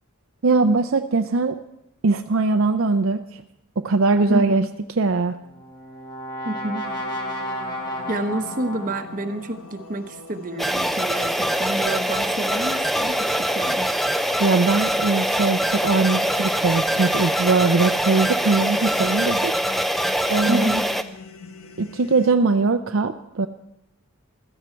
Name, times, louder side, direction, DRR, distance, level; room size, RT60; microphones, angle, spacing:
voice 1, 0.4-1.6 2.0-3.4 3.8-4.7 5.0-5.4 14.4-19.5 20.3-20.7 21.8-23.5, right 3 dB, 65° right, 7 dB, 0.6 m, -21 dB
voice 2, 4.3-4.7 6.4-6.8 8.1-13.9 20.5-20.9, right 1 dB, 40° right, 6 dB, 1.1 m, -28 dB
Brass instrument, 5.3-9.4, equal, 20° left, 2.1 m, -33 dB
sound 1, 6.8-22.3, left 4 dB, 80° left, 1.3 m, -42 dB
sound 2, 10.6-21.0, equal, ahead, 0.5 m, -23 dB
15.5 x 13.5 x 4.6 m, 0.85 s
head